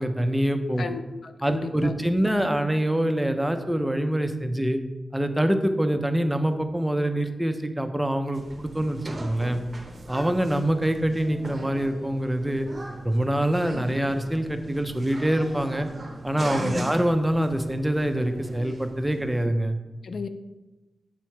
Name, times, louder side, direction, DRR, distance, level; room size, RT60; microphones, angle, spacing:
voice 1, 0.0-0.8 1.4-4.8 5.1-9.6 10.1-12.7 13.0-15.9 16.2-19.8, right 1 dB, 10° right, 7 dB, 0.5 m, -25 dB
voice 2, 0.8-1.9 16.6-16.9 20.0-20.3, left 4 dB, 75° left, 10 dB, 0.3 m, -33 dB
sound 1, 8.3-19.5, right 2 dB, 40° right, 0.9 m, -39 dB
7.2 x 2.9 x 4.5 m, 1.1 s
cardioid pair, 70°, 0 cm